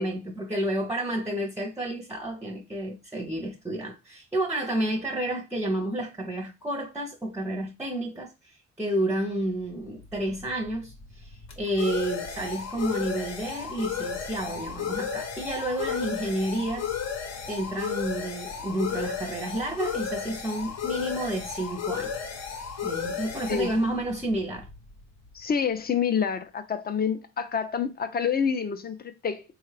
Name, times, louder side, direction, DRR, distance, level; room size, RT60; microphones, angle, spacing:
voice 1, 0.0-16.9 17.5-22.1 22.8-24.7, right 1 dB, 10° right, 0.6 m, -30 dB
sound 1, 9.9-25.3, left 7 dB, 60° left, 0.9 m, -34 dB
voice 2, 25.3-29.4, left 7 dB, 30° left, 0.5 m, -27 dB
3.6 x 2.3 x 3.3 m
cardioid pair, 90°, 30 cm